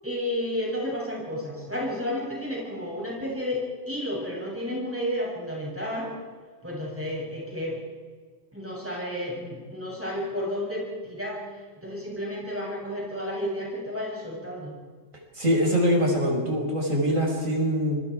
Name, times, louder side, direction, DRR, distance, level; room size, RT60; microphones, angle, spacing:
voice 1, 0.0-6.1 6.6-7.8 8.5-11.5 11.8-14.7, left 1 dB, 10° right, -4 dB, 7.9 m, -31 dB
voice 2, 15.3-18.0, equal, 85° right, 0 dB, 5.8 m, -23 dB
27.0 x 23.5 x 4.9 m, 1.5 s
omnidirectional pair, 1.3 m